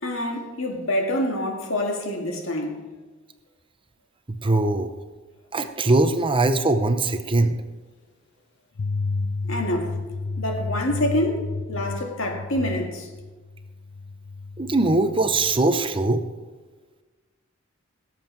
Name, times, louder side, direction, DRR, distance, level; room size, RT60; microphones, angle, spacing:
voice 1, 0.0-2.9 9.4-10.0 10.4-13.1, left 1 dB, 70° left, 2.0 m, -26 dB
voice 2, 4.4-4.9 5.5-7.6 14.6-16.2, right 2 dB, 25° right, 0.7 m, -21 dB
sound 1, 8.8-15.6, left 3 dB, 55° left, 0.5 m, -32 dB
17.0 x 7.7 x 4.5 m
head